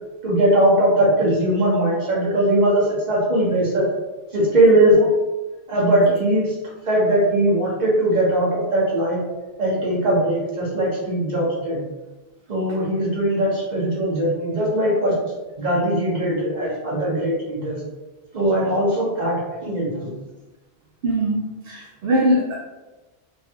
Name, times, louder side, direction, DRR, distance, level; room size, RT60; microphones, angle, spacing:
voice 1, 0.2-3.9 4.3-5.0 5.7-6.5 6.8-9.2 9.6-11.8 12.5-15.2 15.6-17.8 18.3-19.4 19.6-20.1, right 1 dB, 45° right, -6 dB, 1.1 m, -20 dB
voice 2, 21.0-22.5, right 1 dB, 70° right, -2 dB, 0.7 m, -22 dB
3.3 x 2.2 x 2.8 m, 1.1 s
omnidirectional pair, 1.1 m